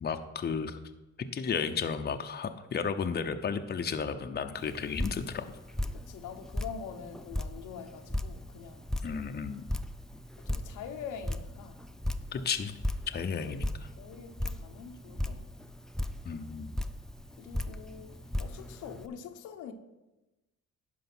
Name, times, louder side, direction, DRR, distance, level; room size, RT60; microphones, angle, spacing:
voice 1, 0.0-0.7 1.3-5.5 9.0-9.7 12.3-12.8 13.1-13.9 16.2-16.8, left 6 dB, 35° left, 0.7 m, -33 dB
Drip, 4.6-19.1, left 1 dB, ahead, 0.5 m, -37 dB
voice 2, 5.9-8.9 9.2-9.4 10.4-11.8 14.0-15.5 17.4-19.7, left 7 dB, 85° left, 1.0 m, -44 dB
11.0 x 5.0 x 6.1 m
cardioid pair, 90°, 30 cm